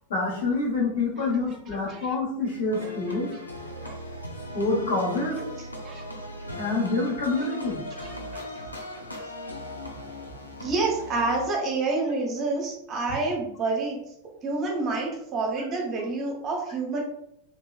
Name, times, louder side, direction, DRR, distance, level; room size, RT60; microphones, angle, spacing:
voice 1, 0.1-3.3 4.5-5.4 6.6-7.8, left 3 dB, 65° left, -3 dB, 1.2 m, -27 dB
sound 1, 2.7-11.5, left 1 dB, 85° left, 0.5 m, -38 dB
voice 2, 8.0-8.4 10.6-14.0 14.4-17.0, right 3 dB, 30° right, 0 dB, 0.8 m, -28 dB
3.0 x 2.7 x 2.4 m, 0.78 s
figure-of-eight pair, 90°, 0 cm